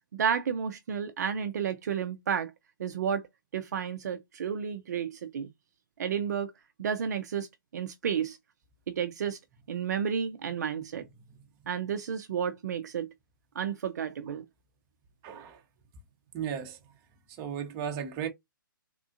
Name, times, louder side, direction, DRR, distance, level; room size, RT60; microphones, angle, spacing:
voice 1, 0.1-2.5 2.8-3.3 3.5-5.5 6.0-6.5 6.8-7.5 7.7-8.4 8.9-9.4 9.7-11.1 11.7-13.1 13.5-14.4, right 7 dB, 50° right, 0.5 m, -31 dB
voice 2, 15.2-15.6 16.3-16.8 17.3-18.3, right 8 dB, 25° right, 0.8 m, -35 dB
3.6 x 2.4 x 2.5 m
figure-of-eight pair, 125°, 11 cm